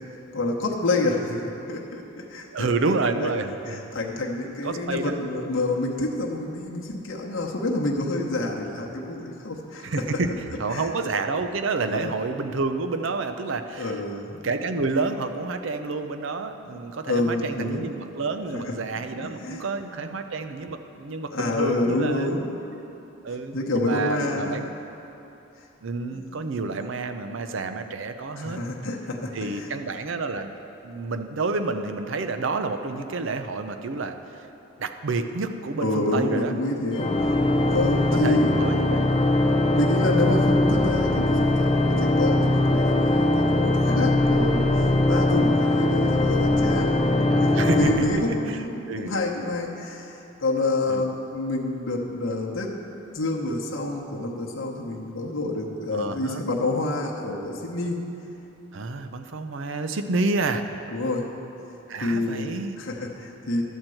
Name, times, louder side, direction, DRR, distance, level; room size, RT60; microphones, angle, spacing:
voice 1, 0.3-2.9 3.2-3.3 3.7-10.2 10.7-10.9 11.9-12.1 13.8-14.4 16.6-16.8 17.1-17.8 19.2-19.6 21.3-22.5 23.5-24.6 26.1-26.2 28.3-29.7 35.8-37.3 37.7-38.8 39.7-47.0 47.4-52.7 53.1-58.0 60.9-61.3 62.0-63.6, left 2 dB, 60° left, -2 dB, 1.0 m, -28 dB
voice 2, 2.5-3.9 4.6-5.1 9.8-14.0 14.4-22.5 23.2-24.7 25.8-28.6 29.3-30.5 30.8-34.5 34.8-36.5 38.2-39.2 44.5-44.9 45.4-45.8 47.3-48.1 48.5-49.2 50.9-51.1 55.9-56.4 58.7-60.6 61.9-62.8, right 3 dB, 60° right, 8 dB, 0.5 m, -29 dB
Organ, 36.9-48.8, left 1 dB, 25° left, 0.4 m, -21 dB
12.0 x 4.4 x 7.7 m, 3.0 s
head